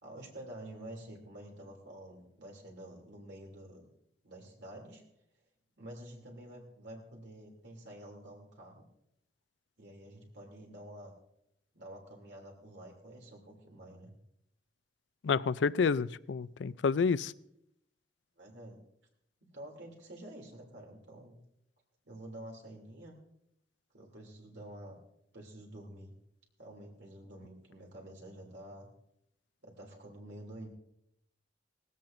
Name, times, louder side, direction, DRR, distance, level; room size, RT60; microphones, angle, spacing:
voice 1, 0.0-3.9 4.2-5.0 5.8-8.9 9.8-11.1 11.7-14.1 18.4-18.8 19.5-21.3 22.0-23.2 23.9-25.0 25.3-26.1 26.6-28.9 29.6-30.7, right 1 dB, 70° right, -1 dB, 2.9 m, -49 dB
voice 2, 15.2-17.3, left 5 dB, 75° left, 18 dB, 0.4 m, -29 dB
19.5 x 16.0 x 2.6 m, 0.77 s
head